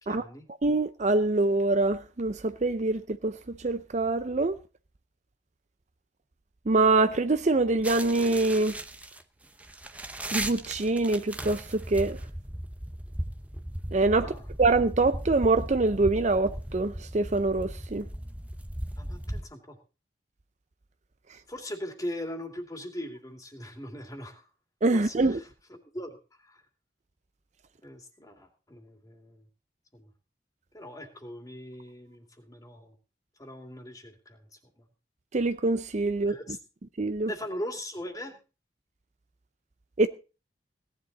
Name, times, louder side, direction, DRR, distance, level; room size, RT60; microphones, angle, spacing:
voice 1, 0.0-0.5 14.2-14.4 19.0-19.8 21.5-24.5 24.9-26.1 26.4-26.6 27.8-29.4 29.9-30.1 30.7-32.9 33.4-34.5 34.8-34.9 36.2-36.6 37.3-38.4, left 1 dB, 20° left, 2.6 m, -40 dB
voice 2, 0.6-4.6 6.7-8.8 10.3-12.2 13.9-14.3 14.6-18.1 24.8-25.4 35.3-36.4 37.0-37.3 40.0-40.1, right 3 dB, 40° right, 0.6 m, -25 dB
sound 1, 7.8-19.4, right 1 dB, 10° right, 0.8 m, -37 dB
17.5 x 10.5 x 4.1 m
head